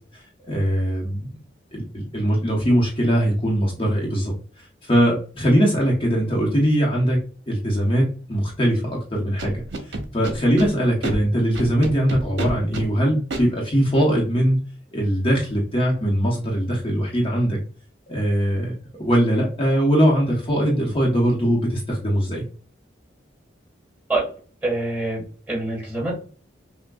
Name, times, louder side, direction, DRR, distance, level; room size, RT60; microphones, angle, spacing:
voice 1, 0.1-1.3 1.7-4.3 4.8-7.2 7.5-14.6 14.9-17.6 18.1-22.4, equal, 30° left, -3 dB, 0.8 m, -21 dB
Scratching (performance technique), 9.4-10.7 11.0-11.1 11.5-12.8 13.3-13.4, right 2 dB, 80° right, 1.0 m, -29 dB
voice 2, 24.6-26.2, right 2 dB, 10° right, -4 dB, 1.5 m, -26 dB
5.9 x 2.2 x 2.3 m, 0.40 s
head